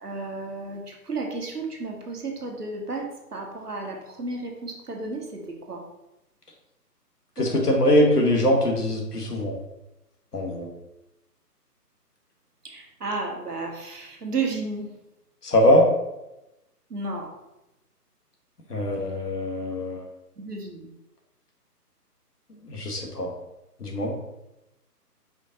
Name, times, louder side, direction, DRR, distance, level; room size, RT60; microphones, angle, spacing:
voice 1, 0.0-5.4 5.7-5.8 7.4-7.9 12.6-14.9 16.9-17.3 20.4-20.9, right 3 dB, 70° right, 1 dB, 1.2 m, -33 dB
voice 2, 7.4-9.6 10.3-10.7 15.4-15.9 18.7-20.0 22.6-23.3 23.8-24.1, left 1 dB, 70° left, 0 dB, 1.3 m, -22 dB
5.0 x 2.7 x 3.9 m, 0.92 s
figure-of-eight pair, 145°, 48 cm